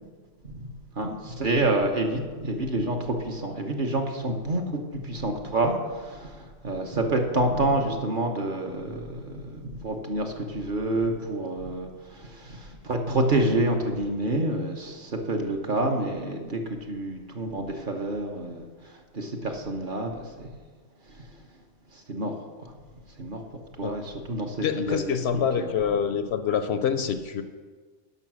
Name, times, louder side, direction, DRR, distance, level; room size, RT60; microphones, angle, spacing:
voice 1, 1.0-20.5 21.9-22.3 22.6-22.7 23.2-23.4 23.8-25.7, right 2 dB, 45° right, 3 dB, 1.1 m, -28 dB
voice 2, 24.6-27.4, left 7 dB, 65° left, 10 dB, 0.7 m, -26 dB
11.0 x 5.7 x 6.2 m, 1.5 s
omnidirectional pair, 1.3 m